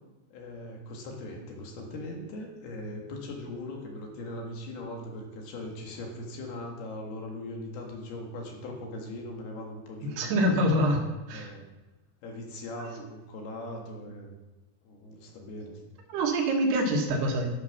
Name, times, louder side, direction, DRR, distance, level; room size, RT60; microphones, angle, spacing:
voice 1, 0.3-10.2 11.3-11.6 12.2-14.3 14.8-15.8, left 1 dB, 70° left, 0 dB, 3.6 m, -40 dB
voice 2, 10.2-11.0 11.3-11.5 16.1-17.5, equal, 75° right, 1 dB, 3.5 m, -25 dB
12.0 x 6.6 x 5.9 m, 1.1 s
omnidirectional pair, 4.8 m